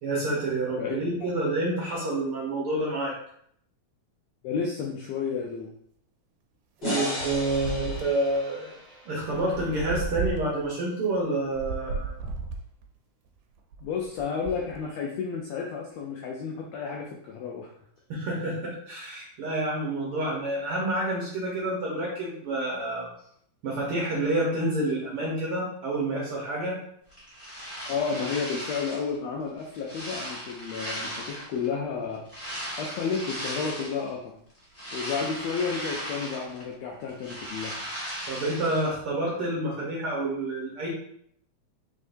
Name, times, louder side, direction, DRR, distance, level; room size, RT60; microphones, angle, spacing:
voice 1, 0.0-3.1 6.8-8.7 9.0-12.2 18.1-23.1 23.6-26.8 38.3-40.9, right 1 dB, 60° right, -4 dB, 1.6 m, -28 dB
voice 2, 4.4-5.7 13.8-17.7 27.9-32.2 32.8-34.4 34.9-37.7, left 5 dB, 80° left, -1 dB, 1.5 m, -31 dB
sound 1, 6.8-10.0, left 1 dB, 60° left, 0.6 m, -35 dB
sound 2, 7.2-8.4 9.2-10.7 11.4-12.9 13.6-14.8, right 4 dB, 90° right, 2.2 m, -34 dB
sound 3, 27.1-29.1 29.6-31.7 32.3-34.1 34.5-36.7 37.0-38.9, equal, 15° left, 0.5 m, -37 dB
5.5 x 3.6 x 2.6 m, 0.67 s
omnidirectional pair, 3.6 m